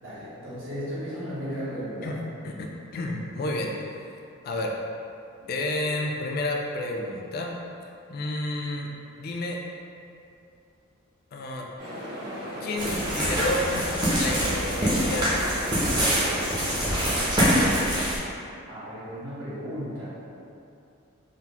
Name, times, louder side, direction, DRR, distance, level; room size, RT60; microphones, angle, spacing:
voice 1, 0.0-2.1 18.7-20.2, equal, 65° right, -11 dB, 1.2 m, -35 dB
voice 2, 2.0-4.8 5.5-7.6 8.1-8.9 9.2-9.6 11.3-11.6 12.6-16.5, left 1 dB, 45° left, 0 dB, 0.3 m, -31 dB
sound 1, 11.8-17.9, equal, 45° right, 1.4 m, -35 dB
sound 2, 12.8-18.2, equal, 20° right, 0.6 m, -25 dB
3.9 x 2.0 x 2.8 m, 2.6 s
head